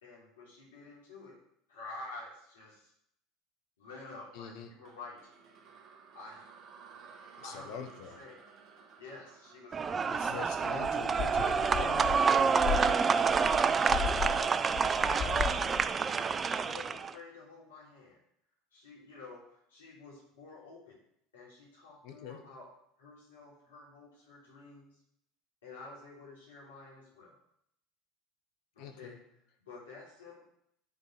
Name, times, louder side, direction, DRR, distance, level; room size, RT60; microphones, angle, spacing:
voice 1, 0.0-1.4 1.7-2.9 3.8-5.3 6.1-6.5 7.4-7.9 8.1-8.4 9.0-10.9 12.4-14.7 15.2-15.6 16.5-18.2 18.7-21.0 21.3-22.7 23.0-25.0 25.6-27.4 28.8-29.2 29.7-30.4, left 3 dB, 90° left, -6 dB, 3.4 m, -49 dB
voice 2, 4.3-4.7 7.4-8.2 10.1-12.4 22.0-22.4 28.8-29.2, left 7 dB, 65° left, 6 dB, 1.6 m, -44 dB
sound 1, 4.8-12.0, right 6 dB, 50° right, 1.9 m, -56 dB
sound 2, 9.7-17.1, right 5 dB, 30° right, 0.5 m, -28 dB
sound 3, 10.8-14.4 14.7-15.9, left 11 dB, 50° left, 0.6 m, -36 dB
11.0 x 4.5 x 6.2 m, 0.73 s
hypercardioid pair, 85°, 0 cm